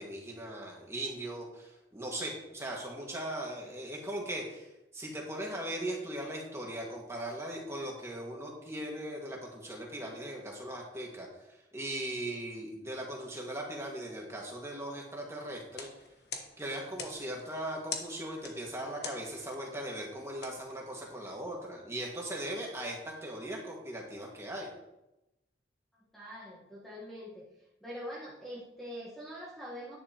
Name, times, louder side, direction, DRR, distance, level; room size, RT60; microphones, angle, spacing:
voice 1, 0.0-15.9 16.6-24.7, right 1 dB, 15° right, -1 dB, 1.8 m, -39 dB
sound 1, 15.7-21.4, left 6 dB, 65° left, 1.3 m, -46 dB
voice 2, 26.1-27.4 27.8-30.0, equal, ahead, -7 dB, 1.4 m, -43 dB
10.0 x 10.0 x 3.0 m, 0.93 s
head